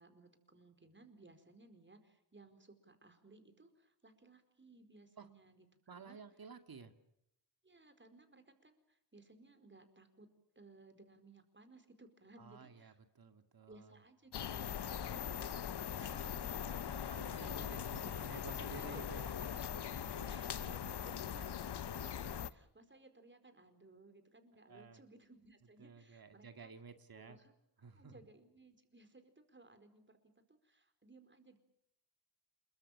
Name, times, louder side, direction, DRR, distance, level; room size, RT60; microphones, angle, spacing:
voice 1, 0.0-6.2 7.6-10.3 10.5-13.0 13.7-17.8 18.3-19.0 19.4-19.8 20.2-26.7 27.1-27.5 27.8-31.6, right 2 dB, 25° right, 8 dB, 4.7 m, -61 dB
voice 2, 5.9-6.9 12.4-14.0 17.2-19.3 19.9-20.5 24.7-25.0 25.8-27.4 27.8-28.2, right 5 dB, 50° right, 8 dB, 2.2 m, -53 dB
sound 1, 14.3-22.5, left 9 dB, 60° left, 1.0 m, -41 dB
27.5 x 23.0 x 7.3 m, 0.78 s
cardioid pair, 75°, 45 cm